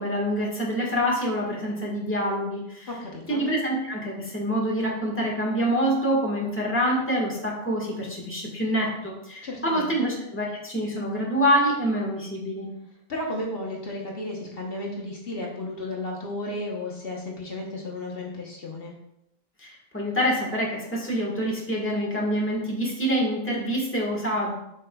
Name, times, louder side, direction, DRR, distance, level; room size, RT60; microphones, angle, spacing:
voice 1, 0.0-2.9 3.3-12.7 19.6-24.5, equal, 10° left, -3 dB, 1.4 m, -26 dB
voice 2, 2.9-3.4 9.4-10.1 13.1-18.9, left 1 dB, 65° left, -2 dB, 1.2 m, -33 dB
7.4 x 5.6 x 2.3 m, 0.81 s
omnidirectional pair, 1.1 m